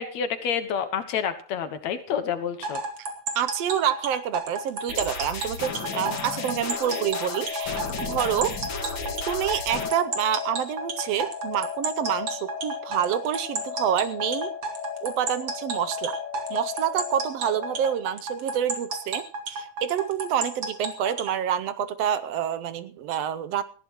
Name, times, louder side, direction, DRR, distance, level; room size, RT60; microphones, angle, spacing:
voice 1, 0.0-2.8, left 7 dB, 70° left, 9 dB, 2.5 m, -28 dB
sound 1, 2.6-21.4, right 3 dB, 50° right, 3.2 m, -32 dB
voice 2, 3.4-8.6 9.2-14.5 15.0-16.1 16.5-23.6, right 9 dB, 70° right, 12 dB, 1.7 m, -27 dB
sound 2, 4.9-9.9, left 4 dB, 45° left, 2.5 m, -34 dB
sound 3, 5.9-18.0, left 8 dB, 90° left, 3.0 m, -36 dB
19.0 x 15.5 x 3.1 m, 0.42 s
omnidirectional pair, 3.4 m